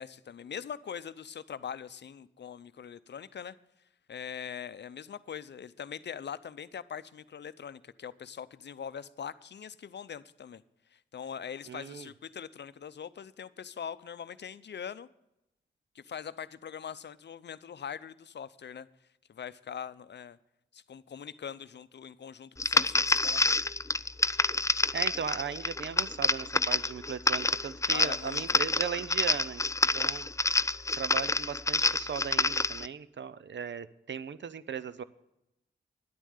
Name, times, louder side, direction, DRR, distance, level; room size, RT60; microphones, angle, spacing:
voice 1, 0.0-3.6 4.1-10.6 10.9-15.1 15.9-18.9 19.3-20.4 20.7-23.6 27.9-28.6, left 8 dB, 55° left, 15 dB, 0.6 m, -42 dB
voice 2, 11.7-12.1 24.9-29.6 29.9-30.3 31.0-35.0, right 7 dB, 60° right, 15 dB, 0.7 m, -37 dB
sound 1, 22.6-32.9, left 3 dB, 15° left, 0.4 m, -28 dB
10.5 x 9.1 x 6.5 m, 0.89 s
cardioid pair, 60°, 21 cm